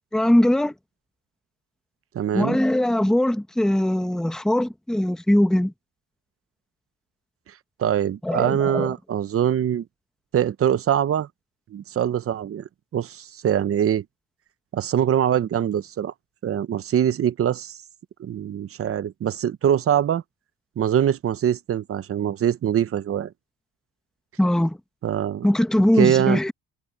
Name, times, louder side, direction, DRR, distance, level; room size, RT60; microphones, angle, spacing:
voice 1, 0.1-0.7 2.3-5.7 8.2-8.9 24.4-24.8 25.4-26.5, left 1 dB, ahead, 0.9 m, -21 dB
voice 2, 2.1-2.6 7.8-9.8 10.3-11.3 11.7-12.6 12.9-14.0 14.7-16.1 16.4-17.8 18.2-20.2 20.8-23.3 25.0-25.5 26.0-26.4, right 9 dB, 40° right, 0.7 m, -23 dB
cardioid pair, 150°, 37 cm